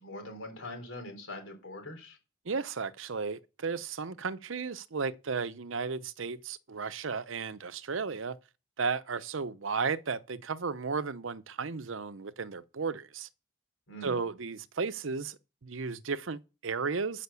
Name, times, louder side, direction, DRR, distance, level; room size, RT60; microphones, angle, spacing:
voice 1, 0.0-2.2 13.9-14.3, left 1 dB, 85° left, 4.3 m, -43 dB
voice 2, 2.5-8.4 8.8-13.3 14.0-17.2, right 5 dB, 80° right, 0.7 m, -34 dB
12.5 x 5.9 x 7.0 m
head